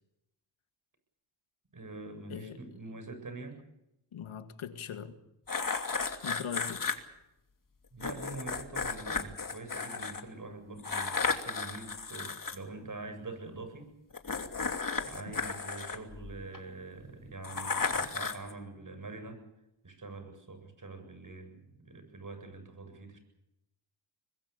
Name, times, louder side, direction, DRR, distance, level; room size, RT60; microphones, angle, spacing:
voice 1, 1.7-3.6 7.9-13.9 15.0-19.4 19.8-23.2, right 3 dB, 40° right, 7.6 m, -45 dB
voice 2, 2.3-2.6 4.1-5.2 6.2-6.9 15.3-15.4, left 7 dB, 85° left, 2.1 m, -40 dB
sound 1, 5.5-7.0 8.0-10.2 10.8-12.6 14.1-16.6 17.4-18.5, left 4 dB, 40° left, 2.9 m, -34 dB
24.0 x 21.5 x 6.9 m
cardioid pair, 65°, 48 cm